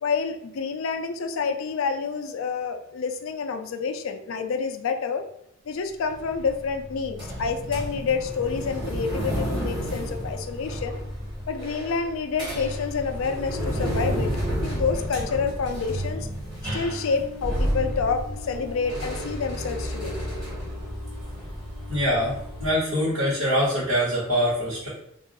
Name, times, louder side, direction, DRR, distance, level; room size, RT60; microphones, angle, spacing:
voice 1, 0.0-5.2 5.7-11.0 11.5-16.3 16.7-20.2, left 5 dB, 70° left, 7 dB, 0.4 m, -28 dB
sound 1, 6.1-22.7, equal, 20° right, 1.4 m, -31 dB
voice 2, 21.9-24.9, equal, 90° right, -10 dB, 1.4 m, -24 dB
2.6 x 2.4 x 3.9 m, 0.76 s
head